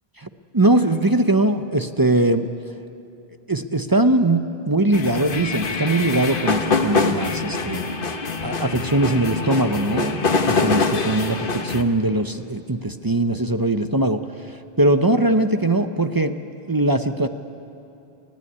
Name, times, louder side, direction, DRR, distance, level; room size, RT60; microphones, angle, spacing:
voice 1, 0.5-2.5 3.5-7.9 8.4-16.3 16.7-17.3, right 2 dB, 25° right, 9 dB, 0.7 m, -21 dB
sound 1, 4.9-11.8, left 4 dB, 60° left, 1.4 m, -24 dB
29.5 x 14.5 x 9.7 m, 2.7 s
omnidirectional pair, 1.0 m